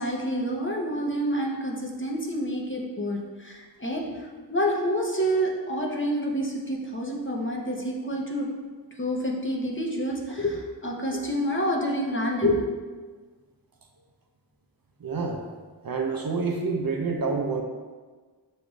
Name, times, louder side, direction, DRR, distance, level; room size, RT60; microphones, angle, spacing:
voice 1, 0.0-8.5 9.0-12.6, equal, 25° left, -2 dB, 0.7 m, -28 dB
voice 2, 15.0-15.4 15.8-17.6, right 4 dB, 55° right, 2 dB, 0.5 m, -28 dB
6.3 x 2.5 x 3.0 m, 1.4 s
wide cardioid pair, 45°, 44 cm